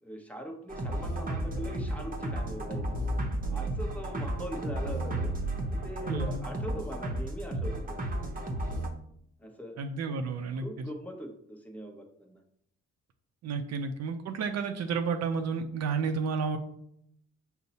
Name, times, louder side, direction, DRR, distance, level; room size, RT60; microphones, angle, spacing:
voice 1, 0.0-3.0 3.5-8.3 9.4-9.8 10.5-12.4 13.7-13.8, right 1 dB, 5° left, 1 dB, 0.8 m, -41 dB
sound 1, 0.7-8.9, right 1 dB, 30° right, 0.8 m, -33 dB
voice 2, 6.1-6.4 9.8-10.6 13.4-16.6, right 5 dB, 60° right, 7 dB, 0.5 m, -31 dB
5.4 x 2.1 x 4.1 m, 0.70 s
cardioid pair, 90°, 30 cm